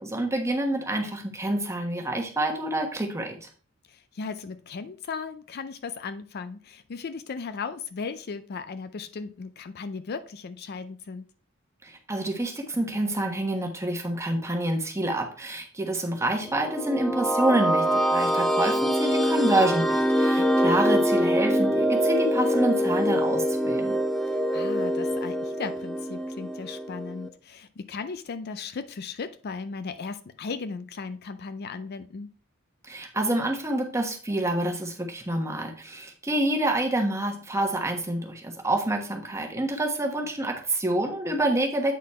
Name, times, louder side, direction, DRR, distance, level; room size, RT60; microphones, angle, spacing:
voice 1, 0.0-3.4 11.8-24.0 32.9-41.9, right 1 dB, 15° right, 1.2 m, -27 dB
voice 2, 3.9-11.3 20.4-20.8 24.3-32.3, left 5 dB, 50° left, 0.4 m, -37 dB
sound 1, 16.4-27.3, equal, 5° left, 0.6 m, -24 dB
8.3 x 4.1 x 4.2 m
head